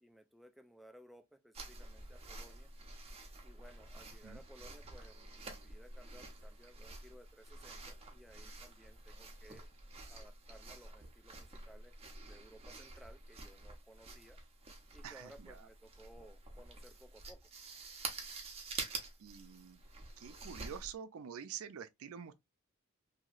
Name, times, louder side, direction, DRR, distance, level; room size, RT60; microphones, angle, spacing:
voice 1, 0.0-2.7 3.4-9.7 10.1-12.0 12.3-14.4 14.9-17.5, equal, ahead, 0.3 m, -59 dB
sound 1, 1.5-20.9, right 3 dB, 30° right, 0.8 m, -49 dB
voice 2, 15.0-15.7 19.2-19.8 20.2-22.3, right 8 dB, 70° right, 0.4 m, -47 dB
3.0 x 2.7 x 2.4 m
head